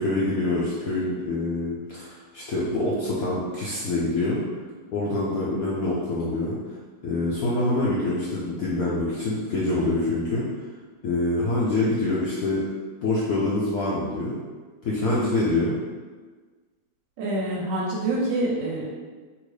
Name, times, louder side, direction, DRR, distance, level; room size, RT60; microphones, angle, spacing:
voice 1, 0.0-4.4 4.9-6.6 7.0-10.4 11.0-12.6 13.0-14.4 14.8-15.8, left 2 dB, 85° left, -7 dB, 0.7 m, -25 dB
voice 2, 17.2-18.9, right 2 dB, 75° right, -4 dB, 1.2 m, -26 dB
2.9 x 2.8 x 3.1 m, 1.4 s
omnidirectional pair, 2.1 m